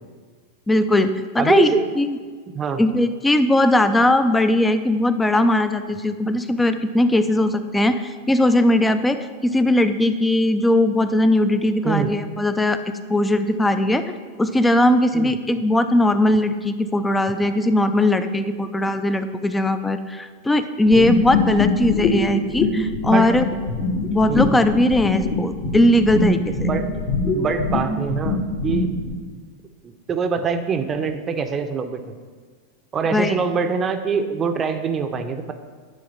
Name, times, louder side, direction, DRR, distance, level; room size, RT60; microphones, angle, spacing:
voice 1, 0.7-2.2 2.8-12.8 13.1-23.4 24.1-26.7 33.1-33.4, left 1 dB, 10° left, 10 dB, 0.5 m, -19 dB
voice 2, 1.4-1.8 2.5-2.8 11.8-12.1 15.1-15.3 21.0-21.1 23.1-23.3 24.3-24.6 26.7-26.9 27.3-28.9 29.8-32.1 32.9-35.5, right 6 dB, 30° right, 7 dB, 0.7 m, -24 dB
sound 1, 20.9-29.1, left 3 dB, 55° left, 2.1 m, -23 dB
9.9 x 3.5 x 5.5 m, 1.5 s
hypercardioid pair, 100°, 0 cm